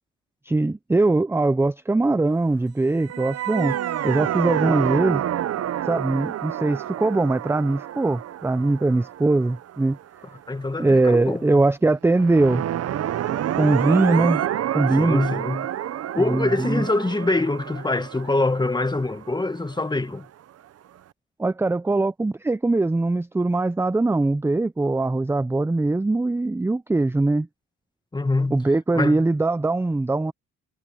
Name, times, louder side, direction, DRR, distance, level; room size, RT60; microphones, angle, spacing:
voice 1, 0.4-3.8 4.0-5.2 5.9-10.0 10.8-12.7 13.6-14.4 14.7-15.2 16.2-16.9 21.4-27.5 28.5-30.3, right 2 dB, 10° right, 0.5 m, -21 dB
sound 1, 3.0-10.2 12.1-19.9, right 11 dB, 55° right, 0.7 m, -28 dB
voice 2, 10.5-11.6 15.0-15.7 16.1-20.3 28.1-28.6 28.9-29.2, left 2 dB, 15° left, 1.5 m, -24 dB
cardioid pair, 90°, 30 cm